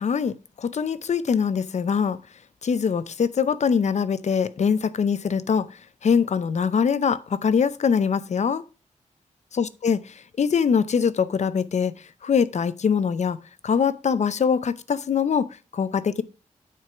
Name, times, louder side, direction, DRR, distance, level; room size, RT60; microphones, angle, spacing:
voice 1, 0.0-2.2 2.6-8.6 9.5-10.0 10.4-11.9 12.2-13.4 13.6-16.2, left 6 dB, 60° left, 0.6 m, -23 dB
9.2 x 4.5 x 5.8 m
wide cardioid pair, 145°, 14 cm